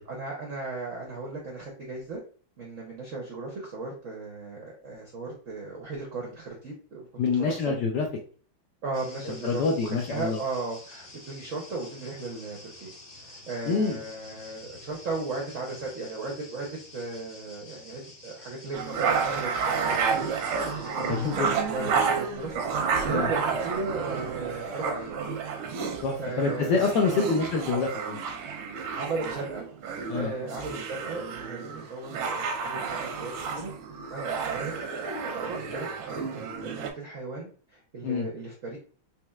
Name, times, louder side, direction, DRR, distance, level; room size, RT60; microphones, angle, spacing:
voice 1, 0.1-2.2 2.6-7.1 7.4-7.7 8.8-16.7 16.9-22.6 22.9-25.2 25.9-27.3 28.9-29.7 30.1-33.7 34.1-38.8, right 3 dB, 65° right, -2 dB, 0.7 m, -36 dB
voice 2, 7.2-8.1 9.2-10.4 13.7-14.0 21.0-21.5 23.1-23.3 26.0-28.2 30.1-30.3 38.0-38.3, left 4 dB, 70° left, 1 dB, 1.0 m, -26 dB
sound 1, 8.9-21.4, left 2 dB, 30° left, 1.2 m, -49 dB
sound 2, 18.7-36.9, right 5 dB, 90° right, 1.6 m, -31 dB
4.2 x 3.1 x 2.3 m, 0.42 s
omnidirectional pair, 2.3 m